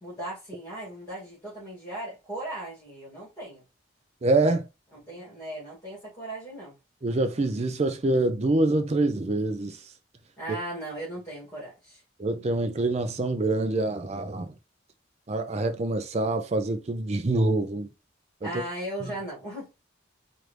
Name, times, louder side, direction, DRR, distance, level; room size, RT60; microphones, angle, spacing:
voice 1, 0.0-3.6 5.0-6.8 10.4-12.0 18.4-19.7, right 1 dB, 15° left, 2.2 m, -37 dB
voice 2, 4.2-4.7 7.0-9.8 12.2-14.5 15.3-17.9 18.4-18.5, right 2 dB, 35° right, 0.5 m, -25 dB
4.6 x 2.6 x 3.2 m
head